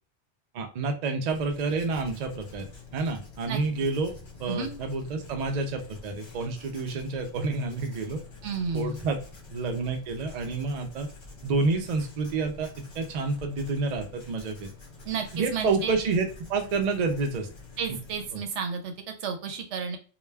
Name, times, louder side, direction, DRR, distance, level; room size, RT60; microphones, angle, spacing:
voice 1, 0.5-2.7 2.9-4.1 4.4-8.2 8.7-9.2 9.5-11.1 11.4-14.7 15.3-17.5 18.3-18.4, right 3 dB, 50° right, 5 dB, 0.5 m, -29 dB
Writing, 1.3-18.3, left 3 dB, 35° left, 0.5 m, -47 dB
voice 2, 8.4-9.0 15.0-15.9 17.8-20.0, right 5 dB, 80° right, 5 dB, 0.9 m, -32 dB
2.2 x 2.2 x 3.2 m, 0.38 s
omnidirectional pair, 1.2 m